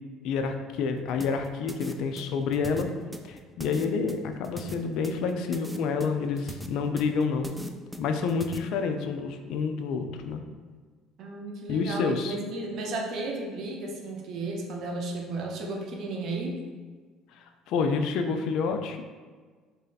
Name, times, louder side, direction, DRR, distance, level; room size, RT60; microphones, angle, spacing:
voice 1, 0.2-2.9 3.2-7.5 8.0-10.4 11.7-12.4 17.7-19.0, left 5 dB, 70° left, 6 dB, 0.3 m, -28 dB
sound 1, 1.2-8.6, right 1 dB, 5° right, 0.3 m, -39 dB
voice 2, 11.2-16.6, right 2 dB, 60° right, 1 dB, 0.7 m, -34 dB
3.1 x 2.7 x 4.0 m, 1.5 s
supercardioid pair, 95°, 0 cm